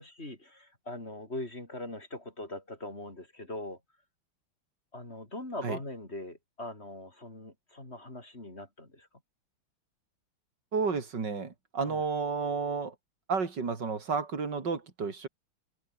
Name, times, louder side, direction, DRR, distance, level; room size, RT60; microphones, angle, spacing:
voice 1, 0.0-3.8 4.9-9.1 11.8-12.0, left 1 dB, 30° left, 4.6 m, -41 dB
voice 2, 10.7-12.9 13.3-15.3, right 5 dB, 55° right, 3.4 m, -31 dB
open air
omnidirectional pair, 2.3 m